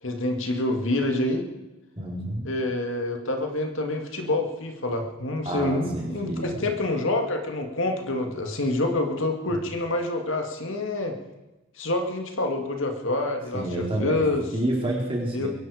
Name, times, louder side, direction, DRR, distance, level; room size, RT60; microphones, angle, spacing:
voice 1, 0.0-1.5 2.4-11.2 11.8-14.5 15.3-15.5, left 2 dB, 65° left, 4 dB, 2.1 m, -27 dB
voice 2, 2.0-2.5 5.4-6.6 13.5-14.2 14.5-15.5, right 1 dB, 25° right, -2 dB, 4.2 m, -29 dB
23.0 x 11.5 x 5.0 m, 1.1 s
head